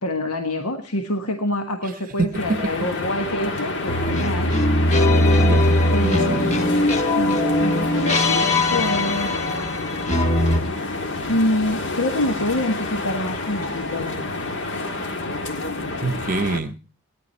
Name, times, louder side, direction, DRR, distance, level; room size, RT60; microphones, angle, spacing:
voice 1, 0.0-4.5 5.9-9.6 11.3-14.2, left 1 dB, 80° left, 5 dB, 1.4 m, -26 dB
voice 2, 2.2-2.6 5.4-5.8 6.0-6.6 16.0-16.7, right 3 dB, 40° right, 9 dB, 0.9 m, -26 dB
sound 1, 2.3-16.6, left 2 dB, 55° left, 1.7 m, -29 dB
sound 2, 3.9-10.6, left 1 dB, 30° left, 1.4 m, -20 dB
17.5 x 10.5 x 4.3 m, 0.34 s
head